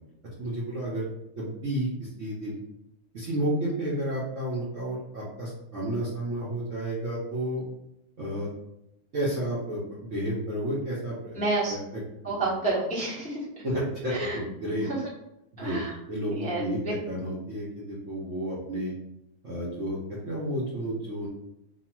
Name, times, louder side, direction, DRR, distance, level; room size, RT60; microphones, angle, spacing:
voice 1, 0.4-1.0 1.4-2.6 3.1-7.6 8.2-8.5 9.1-11.4 11.7-11.8 13.6-14.9 15.5-15.8 16.1-18.9 19.4-21.3, right 1 dB, 55° right, -7 dB, 0.9 m, -31 dB
voice 2, 11.4-11.8 12.2-13.4 14.1-14.4 14.8-15.0 15.6-15.9 16.3-16.9, right 2 dB, 5° left, -8 dB, 0.6 m, -29 dB
3.3 x 2.3 x 4.4 m, 0.84 s
omnidirectional pair, 2.2 m